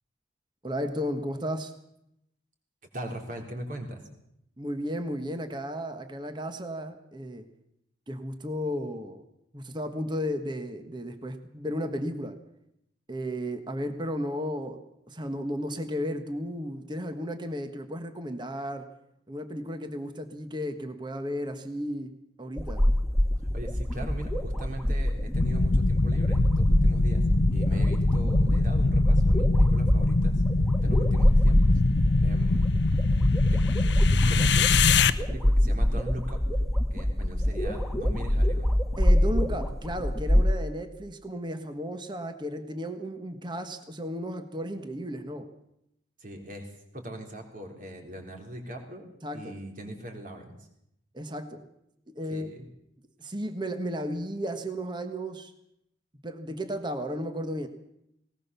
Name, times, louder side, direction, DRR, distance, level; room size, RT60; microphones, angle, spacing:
voice 1, 0.6-1.7 4.6-7.4 8.1-9.2 9.5-12.4 13.1-18.9 19.3-22.1 22.4-22.9 27.7-27.9 39.0-45.5 49.2-49.5 51.1-51.7 52.1-52.5 53.2-55.5 56.2-57.7, equal, 25° right, 7 dB, 1.4 m, -34 dB
voice 2, 2.9-4.0 23.5-27.2 27.5-30.4 30.8-31.8 32.2-32.7 33.5-33.6 34.3-36.4 36.9-38.7 46.2-50.7 52.3-52.7, right 1 dB, 45° right, 2 dB, 3.9 m, -40 dB
sound 1, 22.6-40.5, equal, ahead, 1.5 m, -25 dB
sound 2, 25.3-35.1, left 3 dB, 60° left, 0.8 m, -23 dB
19.5 x 19.5 x 6.9 m, 0.79 s
head